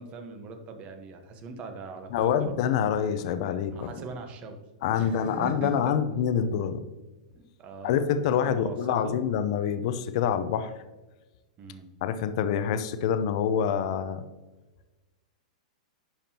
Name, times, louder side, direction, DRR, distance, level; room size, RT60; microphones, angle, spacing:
voice 1, 0.0-2.5 3.7-4.6 4.9-6.0 7.3-9.2 11.6-11.9, right 4 dB, 35° right, 6 dB, 1.2 m, -41 dB
voice 2, 2.1-3.9 4.8-6.8 7.8-10.7 12.0-14.2, left 8 dB, 55° left, 10 dB, 0.7 m, -26 dB
10.5 x 5.8 x 2.9 m, 1.2 s
hypercardioid pair, 130°, 4 cm